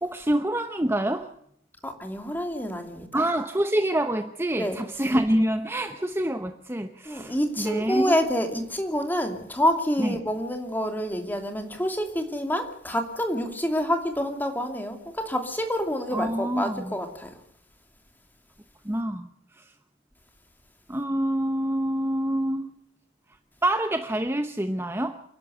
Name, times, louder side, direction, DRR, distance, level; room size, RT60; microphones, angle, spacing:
voice 1, 0.0-1.3 3.1-8.2 10.0-10.2 16.1-16.9 18.8-19.7 20.9-22.7 23.6-25.2, right 1 dB, 15° right, 0.8 m, -26 dB
voice 2, 1.8-3.2 4.6-4.8 7.1-17.3, equal, 10° left, 2.7 m, -27 dB
28.0 x 11.5 x 8.0 m
head